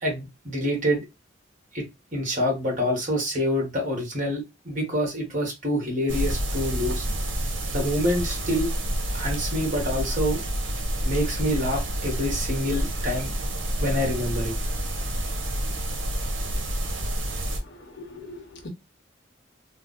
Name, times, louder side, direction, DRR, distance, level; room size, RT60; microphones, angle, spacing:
voice 1, 0.0-1.0 1.7-7.1 7.7-8.7 9.1-10.4 11.0-13.3 13.8-14.5, equal, 45° right, 1.5 m, -27 dB
sound 1, 6.1-17.6, right 1 dB, 70° right, 0.9 m, -28 dB
voice 2, 17.8-18.7, left 2 dB, 65° left, 0.9 m, -41 dB
3.4 x 2.0 x 3.7 m
head